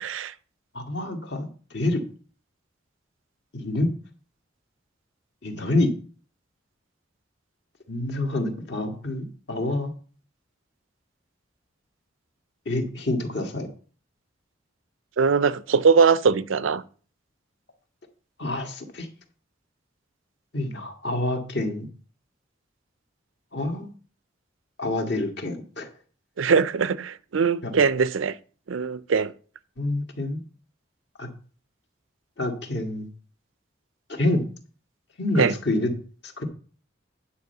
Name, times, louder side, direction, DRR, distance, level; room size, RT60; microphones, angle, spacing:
voice 1, 0.0-0.3 15.2-16.8 26.4-28.3 28.7-29.3 35.4-35.5, right 5 dB, 80° right, 0.5 m, -21 dB
voice 2, 0.7-2.0 3.5-3.9 5.4-5.9 7.9-9.9 12.6-13.7 18.4-19.1 20.5-21.9 23.5-23.9 24.8-25.9 27.6-27.7 29.8-30.4 31.2-31.3 32.4-33.1 34.1-34.4 35.2-35.9 36.2-36.4, left 2 dB, 55° left, 1.7 m, -27 dB
9.7 x 4.3 x 6.5 m
head